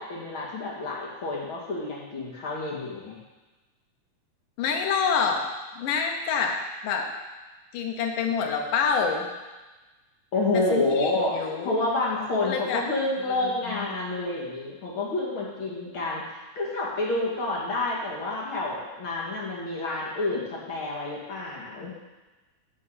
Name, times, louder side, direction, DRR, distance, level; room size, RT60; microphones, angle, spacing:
voice 1, 0.0-3.2 10.3-16.2 16.5-21.9, left 2 dB, 40° left, -5 dB, 2.6 m, -29 dB
voice 2, 4.6-5.4 5.8-6.6 6.8-7.1 7.7-9.3 10.5-11.8 12.4-12.8 13.3-13.4 13.6-13.9, left 6 dB, 80° left, 2 dB, 2.6 m, -27 dB
10.0 x 4.5 x 7.8 m, 1.2 s
omnidirectional pair, 3.7 m